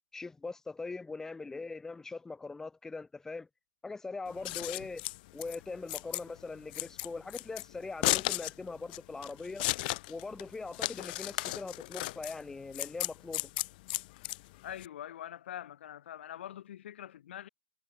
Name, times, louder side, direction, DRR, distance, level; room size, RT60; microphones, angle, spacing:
voice 1, 0.1-3.5 3.8-5.0 5.3-9.7 10.1-13.5, left 3 dB, 5° left, 0.9 m, -41 dB
Scissors, 4.3-14.9, left 21 dB, 45° left, 1.4 m, -35 dB
voice 2, 14.6-17.5, left 11 dB, 65° left, 4.2 m, -44 dB
hypercardioid pair, 145°, 7 cm